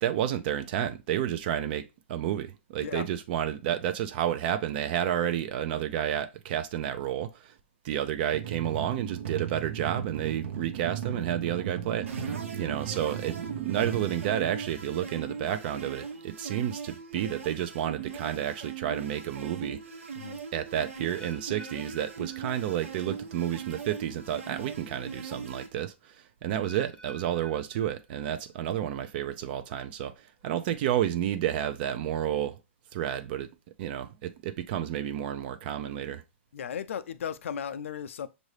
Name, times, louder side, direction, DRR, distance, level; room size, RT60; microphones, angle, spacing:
voice 1, 0.0-7.5 7.8-19.8 20.5-32.6 32.9-33.5 33.8-36.2, right 10 dB, 50° right, 0.5 m, -31 dB
sound 1, 8.3-15.2, right 9 dB, 65° right, 0.9 m, -37 dB
sound 2, 12.1-25.7, right 6 dB, 85° right, 1.2 m, -40 dB
sound 3, 21.1-23.2 23.4-23.9 24.5-24.6 26.6-28.6 28.9-29.3 30.0-30.1, right 2 dB, 15° left, 0.5 m, -51 dB
voice 2, 36.5-38.3, left 8 dB, 75° left, 0.5 m, -36 dB
6.3 x 2.6 x 3.2 m
hypercardioid pair, 130°, 7 cm